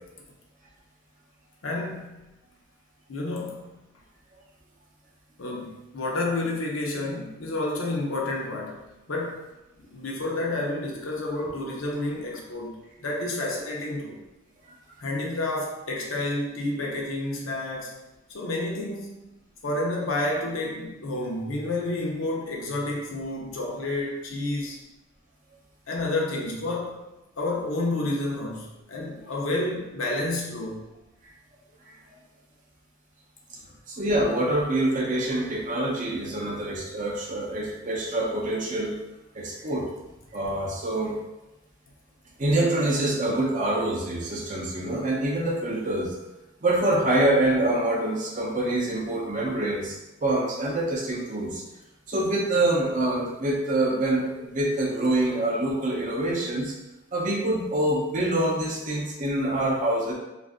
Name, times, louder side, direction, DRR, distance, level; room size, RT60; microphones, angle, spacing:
voice 1, 1.6-2.3 3.1-3.8 5.4-9.5 9.8-14.2 15.0-18.0 18.3-19.2 19.6-24.8 25.9-27.1 27.4-30.8, left 2 dB, 75° left, -2 dB, 0.7 m, -30 dB
voice 2, 33.9-38.9 39.3-39.9 40.3-41.2 42.4-46.1 46.6-51.6 52.1-56.7 57.1-60.1, right 1 dB, 40° right, -2 dB, 0.6 m, -25 dB
2.6 x 2.5 x 3.5 m, 1.0 s
head